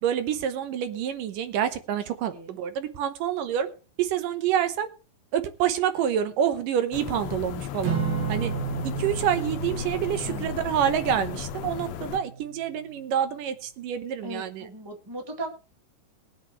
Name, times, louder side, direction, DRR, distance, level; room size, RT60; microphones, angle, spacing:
voice 1, 0.0-3.7 4.0-4.9 5.3-8.0 8.3-8.5 8.8-14.7, right 9 dB, 70° right, 10 dB, 2.5 m, -27 dB
sound 1, 6.9-12.2, left 11 dB, 80° left, 2.6 m, -35 dB
Acoustic guitar / Strum, 7.8-12.3, right 6 dB, 50° right, 2.0 m, -32 dB
voice 2, 14.2-15.5, right 2 dB, 20° right, 2 dB, 0.6 m, -37 dB
21.5 x 8.2 x 3.2 m, 0.33 s
omnidirectional pair, 4.3 m